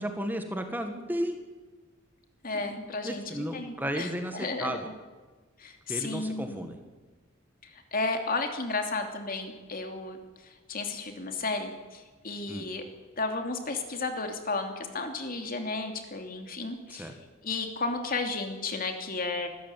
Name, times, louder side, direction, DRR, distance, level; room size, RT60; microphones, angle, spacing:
voice 1, 0.0-1.4 2.5-4.9 5.9-6.8 12.5-12.7 16.9-17.2, equal, 10° right, 5 dB, 1.8 m, -34 dB
voice 2, 2.4-4.9 5.6-6.6 7.9-10.2 10.7-12.9 13.2-17.1 17.4-19.5, left 3 dB, 45° left, 5 dB, 2.9 m, -33 dB
25.5 x 14.0 x 9.3 m, 1.3 s
head